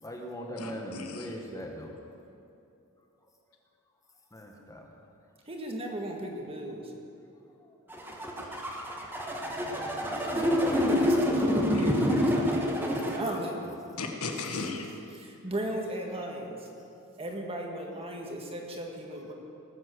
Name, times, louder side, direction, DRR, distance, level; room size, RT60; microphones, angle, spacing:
voice 1, 0.0-1.9 4.3-4.8, equal, 15° left, 1 dB, 1.6 m, -40 dB
voice 2, 0.6-1.4 8.4-8.8 11.7-11.8 14.0-14.9, left 4 dB, 75° left, 3 dB, 1.4 m, -37 dB
voice 3, 5.5-6.9 10.1-13.7 15.2-16.7 17.2-19.3, right 1 dB, 25° right, 1 dB, 1.6 m, -36 dB
sound 1, 7.9-13.2, left 1 dB, 10° right, 1.4 m, -27 dB
19.0 x 7.7 x 6.3 m, 2.7 s
head